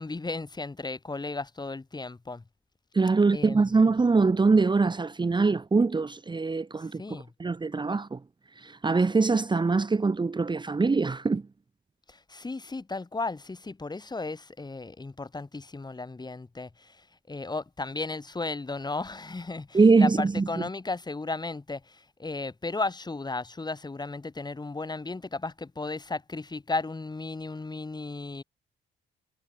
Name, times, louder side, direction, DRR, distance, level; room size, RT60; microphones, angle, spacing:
voice 1, 0.0-2.4 3.3-3.8 6.8-7.3 12.1-17.0 17.3-28.4, left 3 dB, 20° left, 3.1 m, -35 dB
voice 2, 2.9-7.0 7.4-8.2 8.6-11.5 19.7-20.6, right 4 dB, 25° right, 1.3 m, -23 dB
cardioid pair, 90°, 20 cm